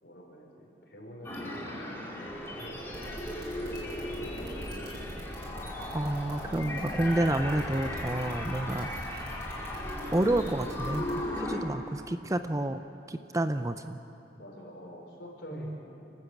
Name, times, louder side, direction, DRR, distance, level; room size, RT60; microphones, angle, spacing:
voice 1, 0.0-5.0 14.3-15.9, equal, 60° left, -1 dB, 5.1 m, -48 dB
sound 1, 1.2-11.6, left 1 dB, 15° left, 3.0 m, -37 dB
sound 2, 2.9-11.1, equal, 60° right, 7.1 m, -43 dB
voice 2, 5.9-8.9 10.1-12.8 13.1-14.0 15.5-15.8, right 1 dB, 15° right, 9 dB, 0.5 m, -29 dB
29.5 x 13.5 x 8.5 m, 2.9 s
head